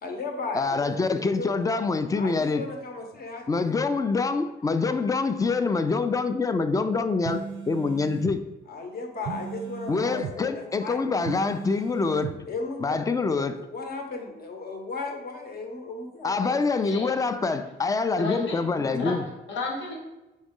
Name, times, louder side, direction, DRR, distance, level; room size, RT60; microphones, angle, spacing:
voice 1, 0.0-1.6 2.1-3.9 8.7-11.4 12.5-13.0 13.6-16.6, left 3 dB, 50° left, 3 dB, 0.9 m, -36 dB
voice 2, 0.5-2.6 3.5-8.4 9.9-12.3 12.8-13.6 16.2-19.2, left 4 dB, 15° left, 10 dB, 0.3 m, -25 dB
sound 1, 7.3-8.3 9.3-10.4 11.3-12.4, right 8 dB, 70° right, 0.4 m, -36 dB
voice 3, 18.2-18.6 19.0-20.0, left 3 dB, 70° left, -1 dB, 1.0 m, -33 dB
3.9 x 3.1 x 3.6 m, 1.0 s
cardioid pair, 90°, 20 cm